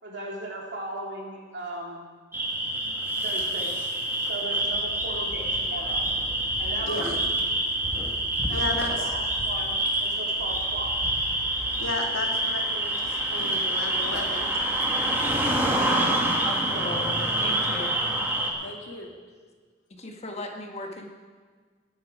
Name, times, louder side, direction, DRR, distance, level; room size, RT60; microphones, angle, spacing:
voice 1, 0.0-2.1 3.2-3.8 4.2-6.1 6.6-7.2 8.5-11.0 16.7-16.9, right 1 dB, 60° right, -2 dB, 3.2 m, -37 dB
sound 1, 2.3-18.5, right 1 dB, 10° right, 1.8 m, -27 dB
voice 2, 6.8-7.1 8.5-9.1 11.8-14.6 18.6-19.1, left 2 dB, 90° left, 1 dB, 2.2 m, -34 dB
voice 3, 16.4-17.9 19.9-21.1, left 1 dB, 35° left, 3 dB, 1.4 m, -37 dB
19.5 x 8.9 x 5.1 m, 1.5 s
head